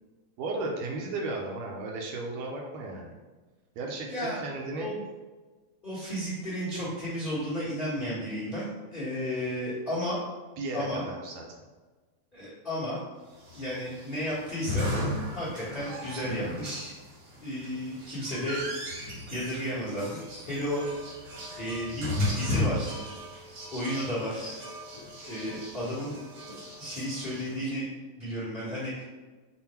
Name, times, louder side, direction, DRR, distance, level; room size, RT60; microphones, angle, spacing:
voice 1, 0.4-3.1 3.8-4.9 10.6-11.5, right 2 dB, 80° right, 0 dB, 1.8 m, -34 dB
voice 2, 4.1-4.4 4.8-5.0 5.8-10.2 10.7-11.0 12.3-13.0 13.5-14.9 15.3-17.0 17.4-20.8 21.2-23.1 23.7-24.7 25.3-26.1 26.8-27.9 28.2-29.0, equal, 45° left, -9 dB, 0.6 m, -33 dB
sound 1, 13.4-27.7, left 1 dB, 55° right, 1.3 m, -36 dB
5.6 x 2.2 x 4.2 m, 1.3 s
omnidirectional pair, 3.4 m